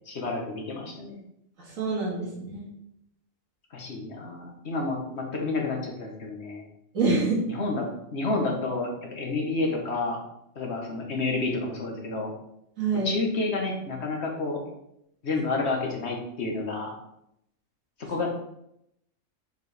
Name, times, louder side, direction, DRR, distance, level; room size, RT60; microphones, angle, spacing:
voice 1, 0.1-1.2 3.7-6.6 7.5-10.2 10.5-12.3 13.0-14.6 15.2-16.9 18.1-18.3, left 3 dB, 55° left, 1 dB, 1.4 m, -30 dB
voice 2, 1.6-2.7 6.9-7.4 12.8-13.1, right 3 dB, 85° right, -3 dB, 2.1 m, -26 dB
6.8 x 4.5 x 3.4 m, 0.78 s
omnidirectional pair, 1.4 m